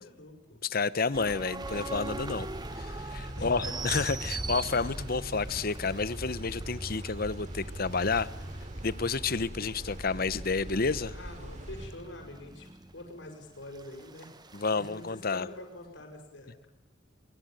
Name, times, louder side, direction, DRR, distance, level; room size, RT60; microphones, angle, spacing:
voice 1, 0.0-0.6 3.4-3.8 11.1-12.7 12.9-14.3 14.7-16.7, left 1 dB, 65° left, 3 dB, 6.8 m, -45 dB
voice 2, 0.6-2.5 2.7-8.3 8.8-11.2 14.5-15.5, left 4 dB, 50° left, 17 dB, 0.9 m, -30 dB
sound 1, 1.1-15.0, right 3 dB, 20° right, 1.1 m, -41 dB
sound 2, 1.6-11.9, equal, 40° right, 3.9 m, -43 dB
24.0 x 23.0 x 9.2 m, 0.88 s
head